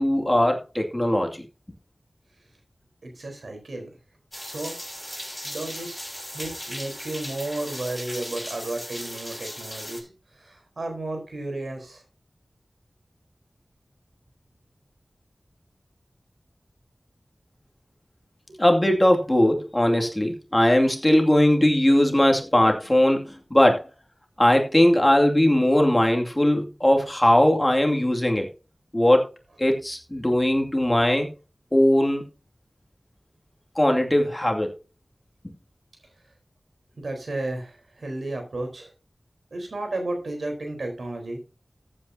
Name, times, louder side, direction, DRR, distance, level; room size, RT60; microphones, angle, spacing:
voice 1, 0.0-1.5 18.6-23.9 24.4-28.5 28.9-29.3 29.6-31.3 31.7-32.2 33.8-34.8 35.4-35.5, left 1 dB, 20° left, 2 dB, 2.4 m, -20 dB
voice 2, 3.0-3.9 4.4-4.8 5.4-12.0 18.5-18.6 37.0-38.9 39.5-41.4, right 2 dB, 85° right, 4 dB, 4.0 m, -33 dB
sound 1, 4.3-10.0, equal, ahead, 6.6 m, -37 dB
14.5 x 8.7 x 2.8 m, 0.30 s
wide cardioid pair, 60°, 0 cm